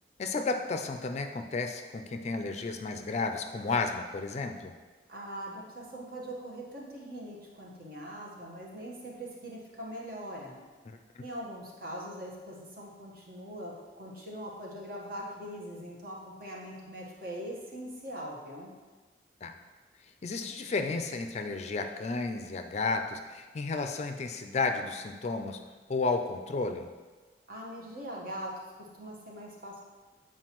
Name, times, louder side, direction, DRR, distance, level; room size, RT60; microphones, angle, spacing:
voice 1, 0.2-4.7 10.9-11.2 19.4-19.5 20.2-25.6 25.9-26.9, left 3 dB, 40° left, 6 dB, 0.4 m, -32 dB
voice 2, 5.1-10.6 11.2-18.7 27.5-28.5 28.8-29.8, equal, 55° right, -3 dB, 1.2 m, -42 dB
7.7 x 4.6 x 3.0 m, 1.4 s
head